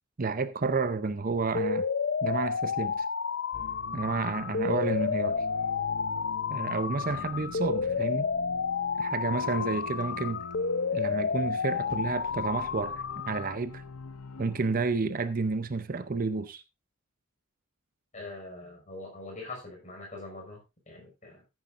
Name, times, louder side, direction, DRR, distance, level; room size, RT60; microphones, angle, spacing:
voice 1, 0.2-1.9 2.2-3.1 3.9-5.4 6.5-8.3 9.0-10.4 10.9-13.8 14.4-16.6, right 4 dB, 40° right, 0.6 m, -31 dB
sound 1, 1.5-13.5, left 5 dB, 50° left, 0.5 m, -31 dB
sound 2, 3.5-14.8, left 3 dB, 90° left, 0.8 m, -44 dB
voice 2, 18.1-21.4, left 2 dB, 35° left, 5.6 m, -43 dB
15.0 x 9.4 x 2.5 m
head